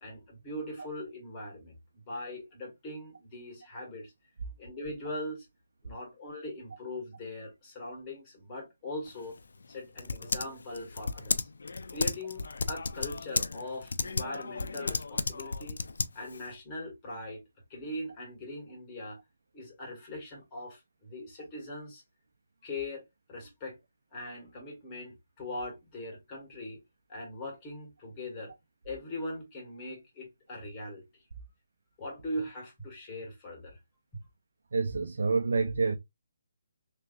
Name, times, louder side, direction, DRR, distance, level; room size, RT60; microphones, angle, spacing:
voice 1, 0.0-4.1 4.6-5.5 5.8-9.4 9.7-11.5 11.9-15.8 16.1-17.4 17.7-19.2 19.5-22.0 22.6-23.0 23.3-23.8 24.1-26.8 27.1-28.5 28.8-31.1 32.0-33.8, left 1 dB, 20° left, 1.8 m, -40 dB
Typing, 9.1-16.5, left 4 dB, 80° left, 0.4 m, -34 dB
voice 2, 34.7-36.0, right 4 dB, 75° right, 0.6 m, -27 dB
3.4 x 3.1 x 2.5 m
hypercardioid pair, 165°, 0 cm